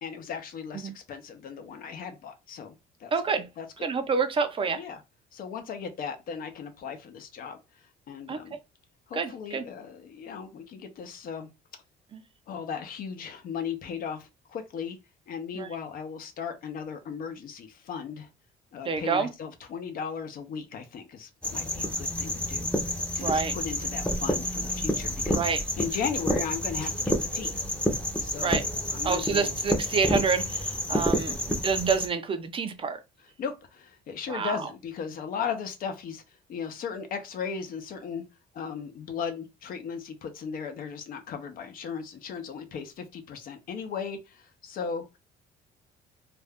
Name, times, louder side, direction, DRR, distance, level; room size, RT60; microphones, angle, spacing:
voice 1, 0.0-2.7 3.0-3.1 3.6-3.7 4.8-5.0 5.3-8.6 9.1-11.5 12.5-15.0 15.3-18.3 18.7-27.7 28.2-28.6 28.9-29.5 33.4-38.2 38.5-45.1, left 6 dB, 55° left, 0.7 m, -37 dB
voice 2, 3.1-3.5 3.8-4.8 8.3-8.4 9.1-9.6 15.5-15.7 18.9-19.3 23.2-23.5 25.3-25.6 28.4-28.7 29.0-33.0 34.3-34.6, right 5 dB, 30° right, 0.5 m, -28 dB
sound 1, 21.4-32.1, left 1 dB, 5° left, 0.7 m, -29 dB
2.5 x 2.2 x 3.5 m
cardioid pair, 110°, 17 cm